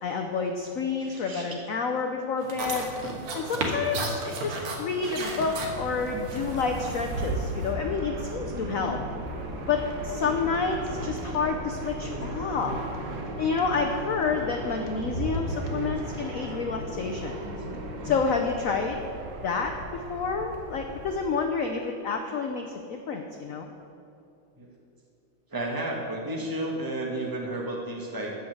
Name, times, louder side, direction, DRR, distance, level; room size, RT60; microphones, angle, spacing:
voice 1, 0.0-2.9 3.3-9.0 9.7-12.8 13.4-17.4 18.0-19.0 19.4-23.7, left 5 dB, 90° left, 4 dB, 0.7 m, -29 dB
voice 2, 1.0-1.5 7.8-7.9 8.5-8.9 10.2-10.3 10.9-11.0 12.0-12.3 12.6-12.8 13.6-13.8 15.6-15.9 17.4-17.7 24.6-24.7 25.5-28.3, right 1 dB, 10° right, -1 dB, 1.3 m, -34 dB
sound 1, 2.4-7.7, right 2 dB, 80° right, 2.2 m, -33 dB
sound 2, 2.6-18.2, equal, 35° left, 0.7 m, -41 dB
Fixed-wing aircraft airplane, 5.1-21.4, right 1 dB, 60° right, 1.7 m, -38 dB
13.0 x 5.5 x 7.9 m, 2.7 s
omnidirectional pair, 2.3 m